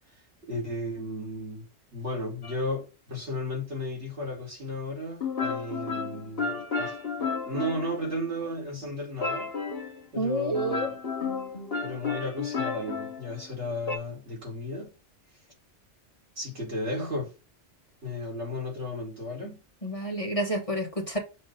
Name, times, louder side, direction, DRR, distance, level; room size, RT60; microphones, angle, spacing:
voice 1, 0.5-1.7 1.9-9.5 10.1-11.0 11.8-14.9 16.4-17.3 18.0-19.6, left 1 dB, 70° right, 2.5 m, -34 dB
sound 1, 2.4-2.5 5.2-8.5 9.2-10.0 10.5-14.0, left 5 dB, 55° left, 1.4 m, -32 dB
voice 2, 10.1-10.9 19.8-21.2, right 1 dB, 30° left, 1.2 m, -29 dB
6.6 x 2.6 x 5.4 m
omnidirectional pair, 1.2 m